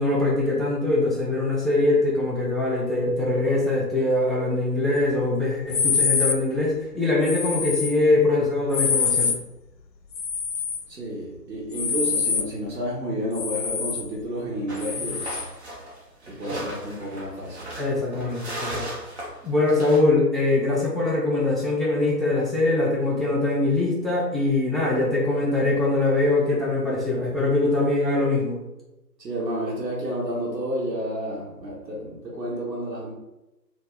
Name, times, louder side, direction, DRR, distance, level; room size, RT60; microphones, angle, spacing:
voice 1, 0.0-9.3 16.5-16.6 17.8-18.9 19.4-28.6, left 2 dB, ahead, -6 dB, 0.3 m, -22 dB
sound 1, 5.7-6.4 7.2-7.9 8.7-9.4 10.1-10.8 11.7-12.5 13.3-14.1 14.8-15.5, left 6 dB, 80° left, 0.6 m, -25 dB
voice 2, 10.9-15.2 16.4-17.7 29.2-33.1, equal, 80° right, -5 dB, 0.9 m, -30 dB
sound 2, 14.7-20.0, right 1 dB, 40° right, 0.6 m, -37 dB
2.1 x 2.0 x 3.6 m, 0.97 s
figure-of-eight pair, 145°, 50 cm